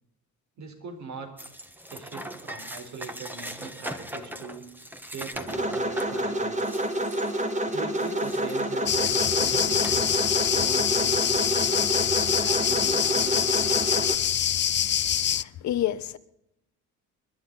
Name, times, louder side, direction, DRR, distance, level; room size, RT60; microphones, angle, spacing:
voice 1, 0.6-1.5 1.9-4.7 5.0-6.7 7.7-10.1 10.5-11.7 12.4-14.2, right 5 dB, 65° right, 4.6 m, -41 dB
sound 1, 1.4-9.3 9.8-10.8, equal, 5° right, 1.5 m, -41 dB
sound 2, 5.5-14.1, right 1 dB, 25° right, 1.9 m, -28 dB
sound 3, 8.9-15.4, left 10 dB, 35° left, 0.5 m, -25 dB
voice 2, 15.4-16.2, left 12 dB, 65° left, 1.0 m, -28 dB
29.0 x 11.5 x 4.1 m
cardioid pair, 110°, 30 cm